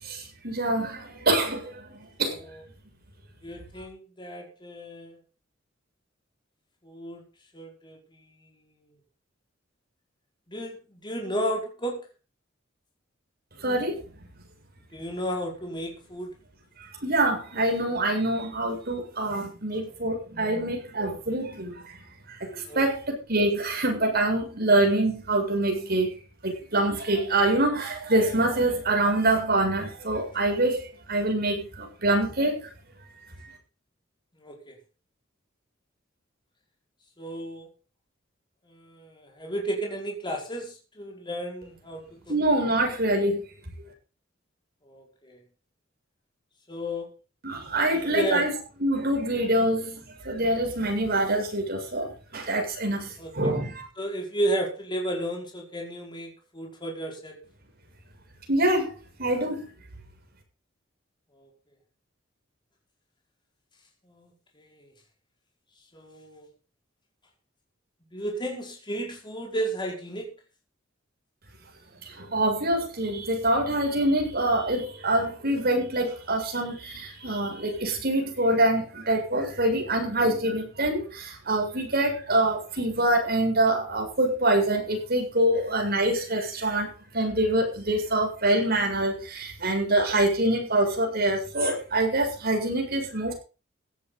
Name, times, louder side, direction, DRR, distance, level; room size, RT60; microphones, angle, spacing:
voice 1, 0.4-1.7 2.2-2.3 13.6-14.0 17.0-21.7 22.5-23.0 23.3-26.1 26.4-30.8 31.1-32.6 42.3-43.4 47.4-48.5 48.8-49.9 50.3-52.1 52.3-53.1 53.3-53.7 58.5-58.9 59.2-59.6 72.3-86.9 87.1-93.3, right 1 dB, 50° right, 2 dB, 7.3 m, -25 dB
voice 2, 2.2-2.6 3.4-5.2 6.8-7.2 7.5-8.0 10.5-12.0 14.9-16.3 22.7-22.8 34.4-34.8 37.2-37.7 38.7-42.2 44.8-45.4 46.7-47.1 48.1-48.4 53.2-53.3 54.0-57.4 61.3-61.5 64.1-64.9 65.9-66.5 68.1-70.3, right 1 dB, 25° left, 0 dB, 5.4 m, -33 dB
16.5 x 12.5 x 4.1 m, 0.33 s
head